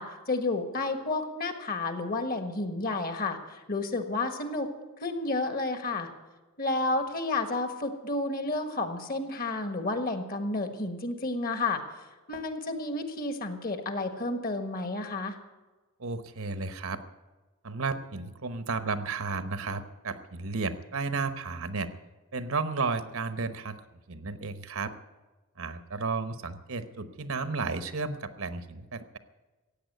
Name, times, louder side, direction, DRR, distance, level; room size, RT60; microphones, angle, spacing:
voice 1, 0.0-4.7 5.0-6.1 6.6-11.8 12.3-15.4, left 2 dB, 40° left, 8 dB, 1.5 m, -31 dB
voice 2, 16.0-17.0 17.6-21.9 22.3-23.8 24.1-24.9 25.6-29.2, right 4 dB, 70° right, 11 dB, 1.0 m, -33 dB
15.5 x 8.9 x 9.3 m, 1.2 s
head